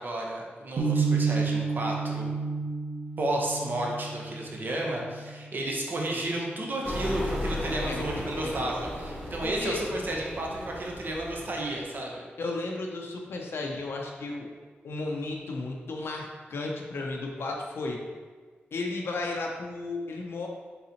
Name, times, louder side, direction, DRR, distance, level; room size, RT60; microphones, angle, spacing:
voice 1, 0.0-2.3 3.2-12.2, right 1 dB, 50° right, -1 dB, 0.7 m, -32 dB
sound 1, 0.8-6.8, right 5 dB, 85° right, 0.4 m, -31 dB
sound 2, 6.8-11.8, left 1 dB, 15° right, 1.3 m, -35 dB
voice 2, 7.9-8.7 9.4-9.8 12.4-14.5 14.8-18.0 18.7-20.5, left 3 dB, 70° left, 0 dB, 0.5 m, -34 dB
3.9 x 3.8 x 2.8 m, 1.5 s
cardioid pair, 70°, 4 cm